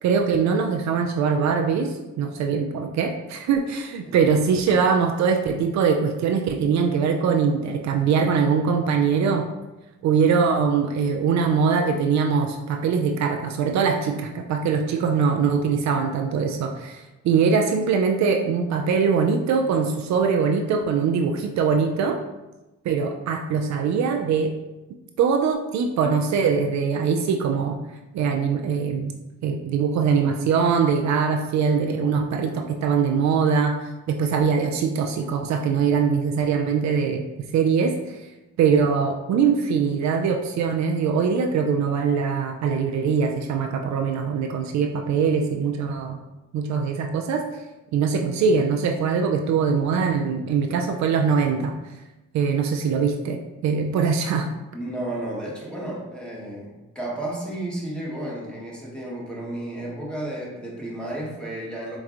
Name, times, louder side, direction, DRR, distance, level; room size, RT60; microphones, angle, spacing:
voice 1, 0.0-9.5 10.0-22.2 22.8-24.5 25.2-27.8 28.1-29.1 29.4-33.8 34.1-37.2 37.5-38.2 38.6-46.2 46.5-47.4 47.9-51.7 52.3-54.5, right 6 dB, 65° right, 3 dB, 0.4 m, -22 dB
voice 2, 54.7-62.0, right 1 dB, 5° left, -5 dB, 1.3 m, -32 dB
4.3 x 3.0 x 2.5 m, 1.0 s
cardioid pair, 90°, 30 cm